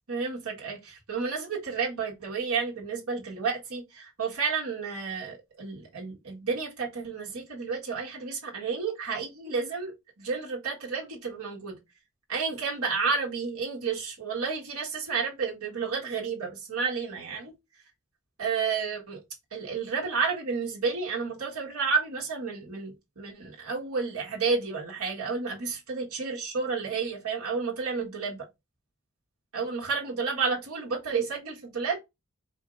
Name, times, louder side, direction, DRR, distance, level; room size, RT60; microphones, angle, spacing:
voice 1, 0.1-11.8 12.3-17.5 18.4-19.2 19.5-28.4 29.5-32.0, right 5 dB, 90° right, 1.6 m, -31 dB
4.5 x 2.7 x 3.7 m
head